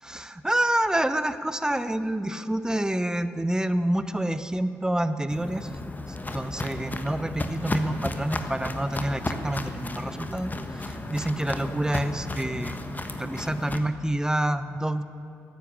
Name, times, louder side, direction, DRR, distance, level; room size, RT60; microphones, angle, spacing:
voice 1, 0.0-5.7 6.1-12.8 13.1-15.0, right 1 dB, 10° right, 11 dB, 0.9 m, -28 dB
Walk footsteps, 5.3-13.8, left 2 dB, 25° left, 1.3 m, -34 dB
14.5 x 9.1 x 8.5 m, 2.7 s
hypercardioid pair, 45°, 7 cm